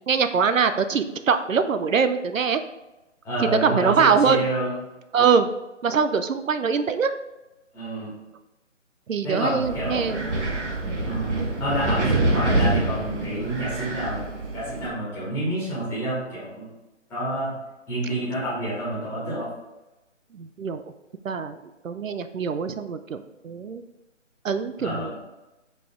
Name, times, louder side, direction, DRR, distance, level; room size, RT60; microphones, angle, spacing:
voice 1, 0.1-2.6 3.6-4.5 5.1-5.5 5.8-7.1 9.1-10.2 20.4-20.8 21.2-21.6 21.8-23.8 24.4-25.1, right 6 dB, 85° right, 10 dB, 0.6 m, -23 dB
voice 2, 3.2-4.7 7.7-8.1 9.2-10.3 11.0-11.3 11.6-14.3 14.5-16.7 17.1-17.5 17.9-19.5 24.8-25.2, right 1 dB, 5° left, -10 dB, 1.9 m, -28 dB
Wind, 9.6-14.9, right 2 dB, 65° right, 1.5 m, -26 dB
5.4 x 5.0 x 3.6 m, 1.0 s
figure-of-eight pair, 155°, 38 cm